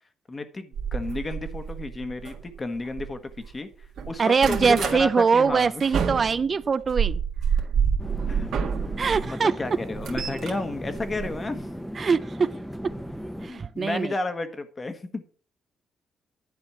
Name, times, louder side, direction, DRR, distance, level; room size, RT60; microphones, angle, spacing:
voice 1, 0.3-3.7 4.0-5.8 8.3-8.6 9.3-11.7 13.5-15.2, left 2 dB, 30° left, 1.4 m, -32 dB
sound 1, 0.7-3.5 3.8-5.0 5.5-9.2 9.6-11.8 12.9-13.1 13.5-13.6 13.9-14.0, right 7 dB, 70° right, 1.7 m, -29 dB
voice 2, 4.2-7.2 9.0-9.5 12.0-12.5 12.8-12.9 13.4-14.1, right 5 dB, 40° right, 0.5 m, -22 dB
sound 2, 8.0-13.5, equal, ahead, 0.9 m, -36 dB
10.5 x 4.3 x 7.3 m
cardioid pair, 90°, 0 cm